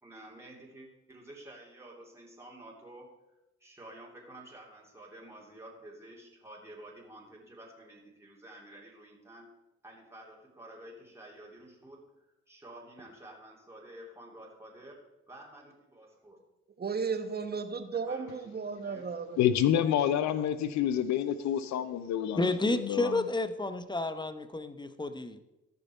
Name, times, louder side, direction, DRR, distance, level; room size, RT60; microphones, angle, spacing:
voice 1, 0.0-3.1 3.6-9.5 9.8-12.1 12.5-15.0 15.3-16.4 17.9-18.4 18.8-19.1, right 1 dB, 10° right, -3 dB, 3.1 m, -50 dB
voice 2, 16.8-19.4, right 5 dB, 35° right, 9 dB, 1.2 m, -34 dB
voice 3, 19.4-22.4 22.8-23.1, left 10 dB, 70° left, 13 dB, 0.7 m, -27 dB
voice 4, 22.4-25.4, left 2 dB, 15° left, 11 dB, 0.9 m, -31 dB
14.0 x 5.3 x 4.5 m, 0.94 s
supercardioid pair, 55°, 29 cm